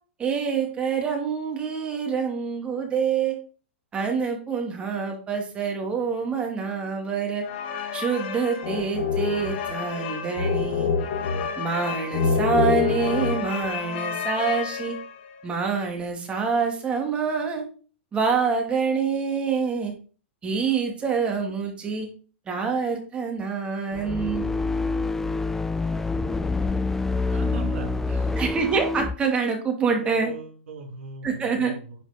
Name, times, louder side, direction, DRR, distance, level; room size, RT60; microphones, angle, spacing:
voice 1, 0.2-3.3 3.9-7.4 7.9-10.9 11.6-14.9 15.4-17.6 18.1-19.9 20.4-22.1 22.5-24.5 28.4-30.3 31.2-31.7, right 5 dB, 15° right, 2 dB, 2.4 m, -26 dB
sound 1, 7.4-15.3, left 6 dB, 55° left, 2.4 m, -27 dB
sound 2, 23.9-29.2, left 3 dB, 5° left, 0.4 m, -26 dB
voice 2, 27.3-28.3 29.8-32.0, right 4 dB, 85° right, 1 dB, 4.0 m, -39 dB
10.5 x 5.0 x 5.2 m, 0.39 s
hypercardioid pair, 150°, 7 cm